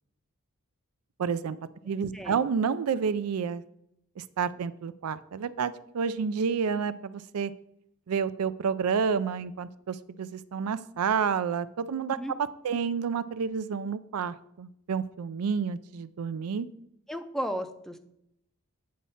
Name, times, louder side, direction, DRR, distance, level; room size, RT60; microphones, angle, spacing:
voice 1, 1.2-1.6 1.8-3.6 4.2-7.5 8.1-12.2 12.6-16.7, right 6 dB, 80° right, 14 dB, 0.4 m, -29 dB
voice 2, 17.1-18.0, equal, ahead, 8 dB, 0.5 m, -34 dB
8.6 x 4.2 x 5.5 m, 0.77 s
head